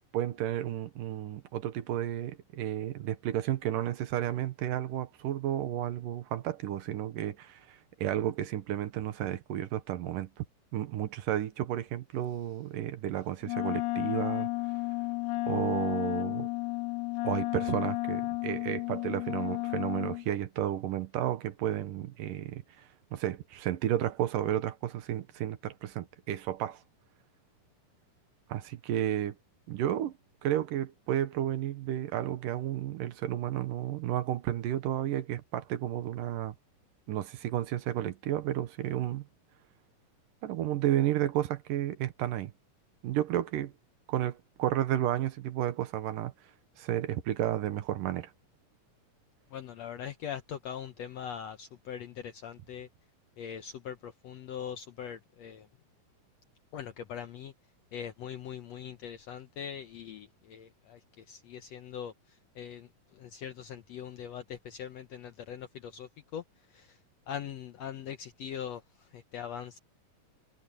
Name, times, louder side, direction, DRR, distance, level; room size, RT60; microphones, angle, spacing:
voice 1, 0.1-10.5 10.7-14.5 15.5-16.5 17.2-26.8 28.5-29.4 29.7-30.1 30.4-36.5 37.1-39.2 40.4-42.5 43.0-43.7 44.1-46.3 46.8-48.3, right 12 dB, 75° right, 2.7 m, -32 dB
Wind instrument woodwind instrument, 13.4-20.3, left 20 dB, 90° left, 2.4 m, -32 dB
voice 2, 49.5-52.9 53.4-55.7 56.7-57.5 57.9-62.1 62.5-62.9 63.1-66.4 66.7-67.0 67.3-68.8 69.1-69.8, left 8 dB, 70° left, 1.6 m, -41 dB
omnidirectional pair, 4.0 m